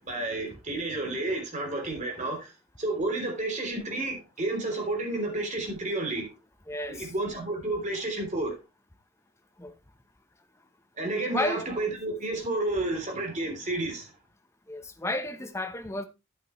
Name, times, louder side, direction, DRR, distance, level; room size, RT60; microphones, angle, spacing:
voice 1, 0.0-2.5 2.8-6.3 6.9-8.5 11.0-14.1, right 2 dB, 35° right, 3.4 m, -31 dB
voice 2, 6.7-7.1 9.6-9.7 11.3-11.7 14.7-16.0, left 1 dB, 15° left, 0.9 m, -32 dB
10.0 x 8.8 x 3.2 m
head